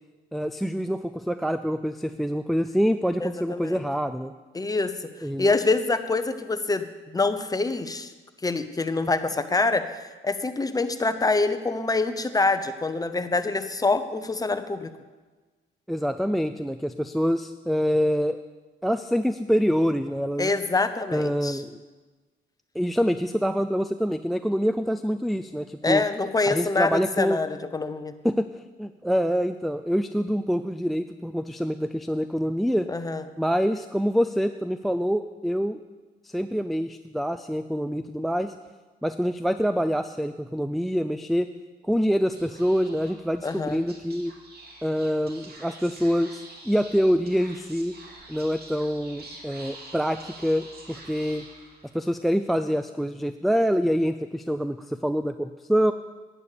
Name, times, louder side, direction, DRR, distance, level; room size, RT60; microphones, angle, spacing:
voice 1, 0.3-4.3 5.2-5.5 15.9-18.4 18.8-20.5 21.1-21.8 22.7-26.0 26.5-27.4 28.2-32.9 33.4-35.8 36.2-38.5 39.0-41.5 41.8-44.3 44.8-47.9 48.3-51.4 51.9-55.9, equal, ahead, 11 dB, 0.4 m, -26 dB
voice 2, 3.2-3.8 4.5-4.9 5.4-8.1 8.4-14.9 20.4-21.6 25.8-28.2 32.9-33.2 43.4-43.8, left 3 dB, 20° left, 10 dB, 0.8 m, -25 dB
Speech / Whispering, 42.3-52.1, right 2 dB, 50° right, 2.4 m, -47 dB
11.0 x 9.0 x 6.7 m, 1.3 s
cardioid pair, 90°, 20 cm